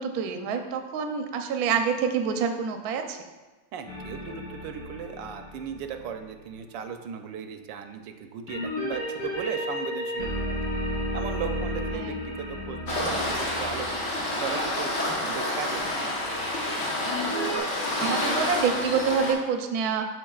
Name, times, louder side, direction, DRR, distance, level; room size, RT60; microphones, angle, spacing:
voice 1, 0.0-3.2 11.9-12.2 17.5-20.1, right 6 dB, 65° right, 5 dB, 1.0 m, -27 dB
voice 2, 3.7-10.7 11.1-14.0 14.4-14.9 15.2-15.8, right 7 dB, 85° right, 7 dB, 1.3 m, -37 dB
sound 1, 3.9-6.6 8.5-15.0 17.1-17.6, equal, 75° left, 2.9 m, -33 dB
Waves surf, 12.9-19.3, left 1 dB, 45° left, 1.2 m, -28 dB
12.0 x 4.1 x 2.3 m, 1.2 s
omnidirectional pair, 1.9 m